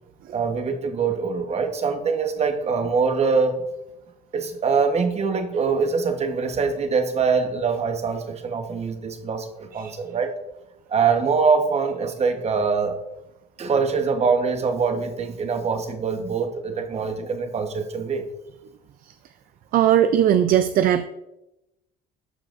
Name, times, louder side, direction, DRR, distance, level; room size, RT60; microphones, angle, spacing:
voice 1, 0.3-3.6 4.3-10.3 10.9-13.0 13.6-18.3, right 5 dB, 40° right, 7 dB, 1.0 m, -23 dB
voice 2, 19.7-21.0, right 10 dB, 60° right, 11 dB, 0.4 m, -18 dB
14.0 x 4.8 x 2.5 m, 0.90 s
cardioid pair, 110°, 17 cm